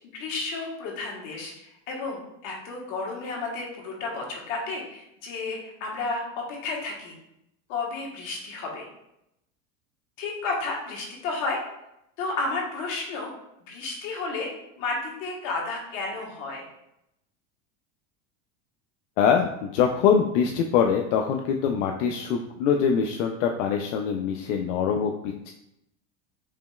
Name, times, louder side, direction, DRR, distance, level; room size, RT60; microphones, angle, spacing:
voice 1, 0.1-6.2 6.5-7.1 7.7-8.9 10.2-11.6 12.2-13.3 13.7-14.5 14.8-16.6, left 3 dB, 60° left, -1 dB, 1.3 m, -32 dB
voice 2, 19.2-25.5, left 7 dB, 85° left, 3 dB, 0.5 m, -24 dB
4.9 x 3.0 x 2.3 m, 0.83 s
supercardioid pair, 125°, 36 cm